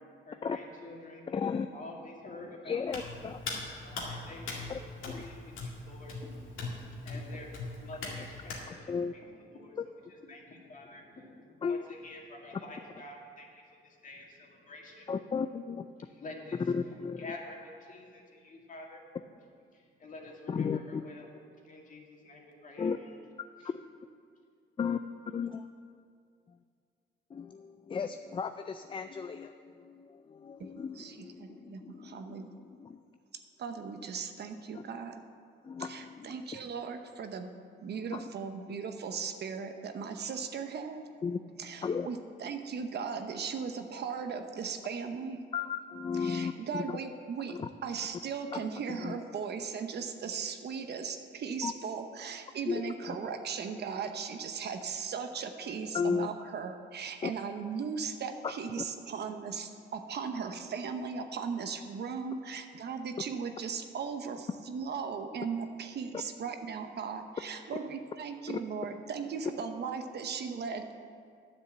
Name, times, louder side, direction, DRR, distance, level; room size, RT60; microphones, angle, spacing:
voice 1, 0.3-3.3 3.8-4.7 5.1-8.9 9.2-9.8 10.2-15.1 16.0-16.6 16.9-19.0 19.7-21.3 21.6-23.1 23.6-23.7, left 2 dB, 40° left, -1 dB, 2.2 m, -48 dB
voice 2, 1.3-1.7 2.7-3.6 4.7-5.2 8.7-9.1 9.8-9.9 11.6-11.8 15.1-15.9 16.6-17.3 20.5-21.0 22.8-23.0 24.8-25.7 27.3-33.0 34.7-34.8 35.6-36.6 38.1-38.2 41.2-42.1 45.5-47.0 47.5-47.7 48.5-48.6 48.9-49.2 51.6-51.7 52.6-53.2 55.9-56.3 57.2-57.3 58.4-58.8 66.1-66.2 68.5-68.6, left 6 dB, 25° left, 9 dB, 0.4 m, -35 dB
Hands, 2.9-8.6, left 3 dB, 80° left, 2.1 m, -41 dB
voice 3, 30.8-32.5 33.6-35.2 35.8-37.5 37.8-41.0 41.6-45.4 46.1-70.9, right 6 dB, 55° right, 6 dB, 0.9 m, -38 dB
9.4 x 7.3 x 7.7 m, 2.2 s
cardioid pair, 90°, 20 cm